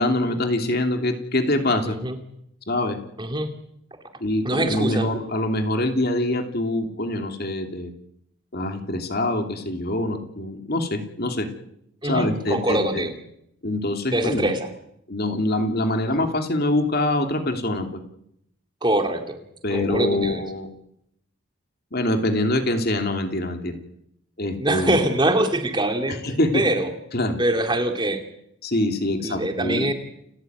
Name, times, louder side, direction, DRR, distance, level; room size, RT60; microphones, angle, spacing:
voice 1, 0.0-2.0 2.7-3.0 4.2-7.9 8.5-11.5 12.1-13.0 13.6-14.5 15.1-18.0 19.6-20.7 21.9-23.8 24.4-25.0 26.2-26.6 27.1-27.4 28.6-29.9, left 1 dB, 45° left, 5 dB, 2.9 m, -24 dB
voice 2, 1.9-2.2 3.2-3.5 4.4-5.1 12.0-13.1 14.1-14.7 16.1-16.2 18.8-19.4 19.7-20.4 24.6-26.2 26.5-26.9 27.4-28.2 29.2-29.9, right 1 dB, 20° right, 5 dB, 2.7 m, -23 dB
29.5 x 14.5 x 9.5 m, 0.77 s
head